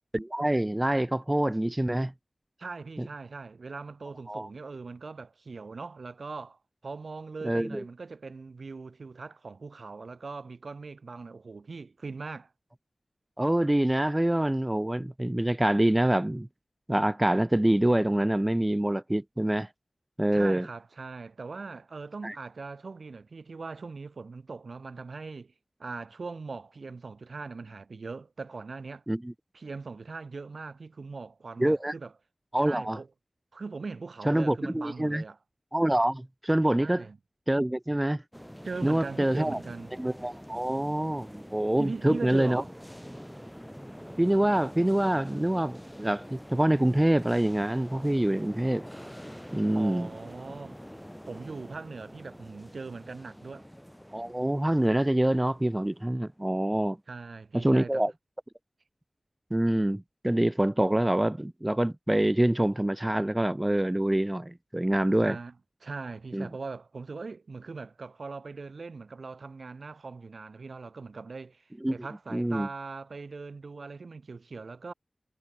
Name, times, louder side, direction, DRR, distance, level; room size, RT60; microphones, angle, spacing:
voice 1, 0.1-2.1 3.0-3.1 4.3-4.5 7.4-7.8 13.4-16.5 16.9-19.7 20.2-20.7 22.2-22.4 29.1-29.3 31.6-31.9 32.5-33.0 34.2-35.2 35.7-37.0 37.5-38.2 38.8-39.6 40.0-42.6 44.2-48.8 49.5-50.1 54.1-57.0 57.5-58.1 59.5-65.4 66.3-66.5 71.8-72.0 72.3-72.7, right 1 dB, 15° right, 0.6 m, -26 dB
voice 2, 2.6-12.5 20.3-25.5 25.8-29.0 29.5-32.1 32.6-33.1 33.5-35.4 36.8-37.2 38.6-39.9 41.8-42.7 49.7-50.8 51.2-53.7 57.1-58.0 65.2-65.5 65.8-71.6 71.9-74.9, right 4 dB, 75° right, 1.4 m, -40 dB
sound 1, 38.3-56.5, equal, ahead, 5.3 m, -46 dB
wide cardioid pair, 55°, 0 cm